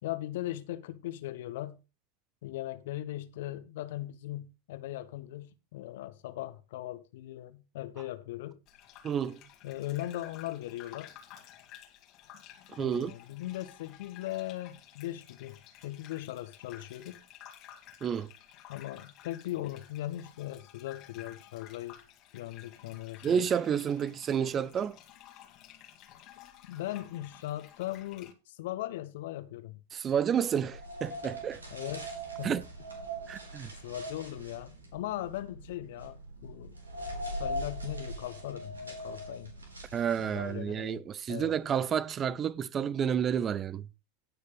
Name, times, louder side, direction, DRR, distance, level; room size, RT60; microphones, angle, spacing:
voice 1, 0.0-1.8 2.4-8.6 9.6-11.1 12.8-17.2 18.7-22.0 22.3-23.4 26.7-29.8 31.7-32.1 32.4-32.6 33.8-36.2 36.4-36.7 37.4-39.5 40.2-41.0 41.3-41.5, left 14 dB, 55° left, 1.3 m, -39 dB
Gurgling / Bathtub (filling or washing), 8.7-28.3, left 11 dB, 35° left, 2.0 m, -53 dB
voice 2, 9.0-9.4 12.7-13.1 18.0-18.3 23.2-25.0 29.9-31.6 32.4-32.6 33.3-33.7 39.9-43.9, right 8 dB, 25° right, 0.5 m, -30 dB
sound 1, 30.5-40.5, right 1 dB, 75° right, 4.1 m, -41 dB
17.5 x 6.6 x 3.2 m
figure-of-eight pair, 90°, 0 cm